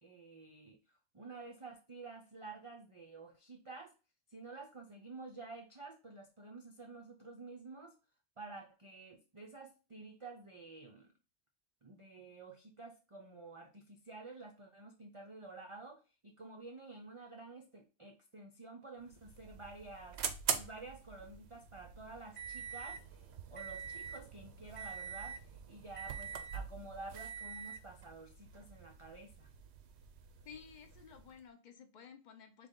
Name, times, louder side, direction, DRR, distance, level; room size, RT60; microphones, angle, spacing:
voice 1, 0.0-3.9 4.3-8.0 8.4-11.1 11.8-20.2 20.5-23.2 23.5-25.4 25.7-29.5, right 3 dB, 40° right, 0.4 m, -51 dB
sound 1, 19.0-31.4, right 7 dB, 65° right, 0.8 m, -44 dB
voice 2, 30.4-32.7, left 7 dB, 50° left, 0.6 m, -54 dB
3.8 x 3.3 x 3.7 m
omnidirectional pair, 1.3 m